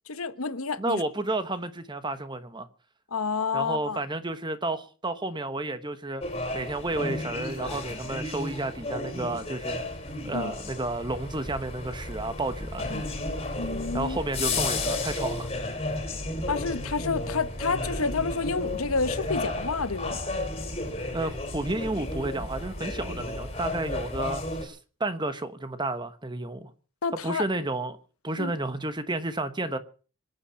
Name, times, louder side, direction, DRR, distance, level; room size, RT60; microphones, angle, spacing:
voice 1, 0.1-1.0 3.1-4.0 10.3-10.5 12.8-13.0 13.6-14.2 16.5-20.2 27.0-27.5 28.4-28.5, left 4 dB, 85° left, 1.2 m, -29 dB
voice 2, 0.8-2.7 3.5-6.2 6.5-9.8 10.2-13.1 13.9-15.5 21.1-26.7 27.2-28.0 28.2-29.8, right 2 dB, 20° right, 1.1 m, -31 dB
sound 1, 6.2-24.6, left 2 dB, 30° left, 3.1 m, -33 dB
26.0 x 8.7 x 5.6 m
head